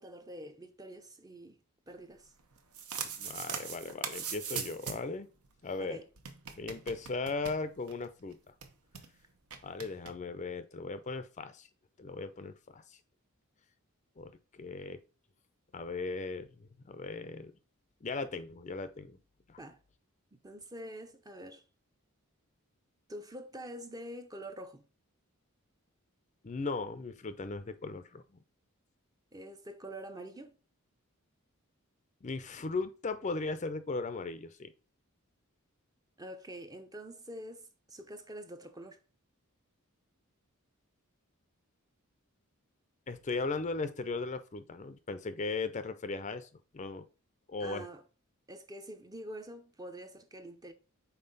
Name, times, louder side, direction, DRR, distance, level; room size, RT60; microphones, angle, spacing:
voice 1, 0.0-1.6 1.9-2.3 5.8-6.1 19.6-19.8 20.4-21.6 23.1-24.9 29.3-30.6 36.2-39.0 47.6-48.0 48.5-50.7, right 1 dB, 15° right, 0.5 m, -46 dB
sound 1, 2.5-5.2 5.4-5.5 5.7-5.8 6.2-8.0 8.3-8.4 8.6-9.1 9.5-10.1, right 7 dB, 80° right, 1.0 m, -40 dB
voice 2, 3.2-5.3 5.6-6.0 6.6-8.4 9.6-11.7 12.0-13.0 14.2-14.3 14.6-15.0 15.7-17.5 18.0-19.2 19.5-19.6 26.4-28.2 32.2-34.7 43.1-46.5 46.7-47.1 47.5-47.9, left 3 dB, 30° left, 0.4 m, -37 dB
5.6 x 4.2 x 3.9 m
head